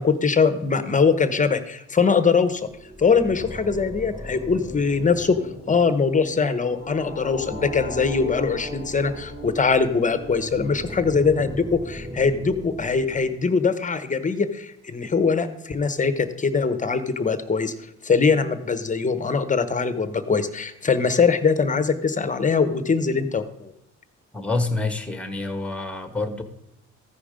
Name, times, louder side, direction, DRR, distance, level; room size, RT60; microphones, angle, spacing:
voice 1, 0.0-2.7 3.0-5.4 5.7-17.7 18.0-23.7, left 5 dB, 25° left, 12 dB, 0.9 m, -22 dB
sound 1, 2.6-13.8, equal, 20° right, 2.5 m, -37 dB
voice 2, 24.3-26.4, left 3 dB, 5° left, 8 dB, 1.4 m, -27 dB
14.5 x 5.1 x 5.1 m, 0.80 s
cardioid pair, 90°, 30 cm